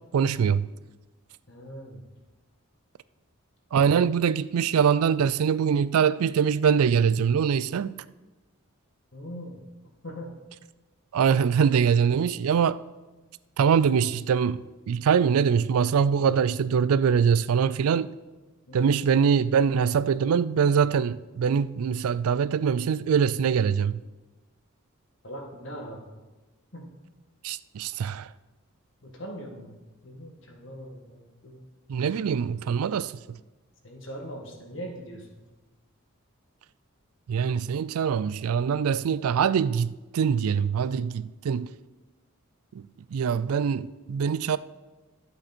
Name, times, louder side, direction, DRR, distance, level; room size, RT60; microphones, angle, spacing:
voice 1, 0.1-0.7 3.7-7.9 11.1-12.8 13.6-18.1 18.7-24.0 27.4-28.3 31.9-33.4 37.3-41.7 42.7-42.8 43.1-44.6, right 7 dB, 85° right, 0.4 m, -23 dB
voice 2, 1.5-2.0 9.1-9.6 10.0-10.3 18.7-18.9 25.2-26.2 26.7-26.9 29.0-29.8 30.0-31.6 33.8-35.4, equal, 60° left, 1.8 m, -41 dB
12.5 x 7.5 x 4.4 m
head